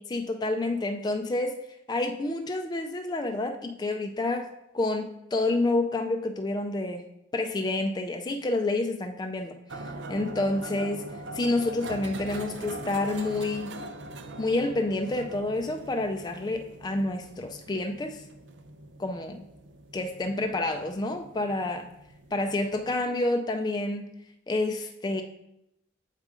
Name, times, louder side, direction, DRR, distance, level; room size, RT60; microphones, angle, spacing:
voice 1, 0.0-1.6 1.9-7.0 7.3-11.0 11.3-13.8 14.4-18.2 19.0-19.4 19.9-21.9 22.3-24.1 24.5-25.2, left 2 dB, 20° left, 5 dB, 0.3 m, -29 dB
sound 1, 9.7-23.0, right 1 dB, 75° right, 0.6 m, -42 dB
7.4 x 4.8 x 3.7 m, 0.83 s
head